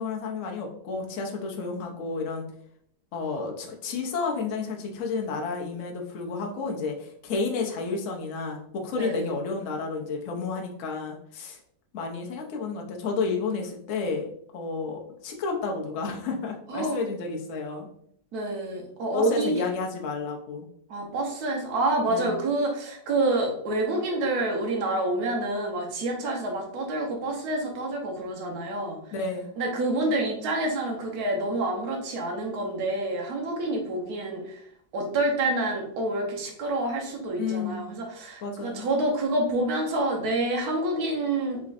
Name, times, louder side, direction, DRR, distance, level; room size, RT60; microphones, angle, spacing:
voice 1, 0.0-2.4 3.1-11.6 11.9-14.3 14.5-17.9 19.1-20.7 22.1-22.4 29.1-29.5 37.4-37.8 38.4-38.8, left 4 dB, 60° left, 1 dB, 0.8 m, -31 dB
voice 2, 9.0-9.3 16.7-17.0 18.3-19.5 20.9-29.0 29.6-34.6 34.9-41.6, right 2 dB, 55° right, 0 dB, 1.3 m, -28 dB
4.2 x 3.8 x 2.5 m, 0.68 s
omnidirectional pair, 2.1 m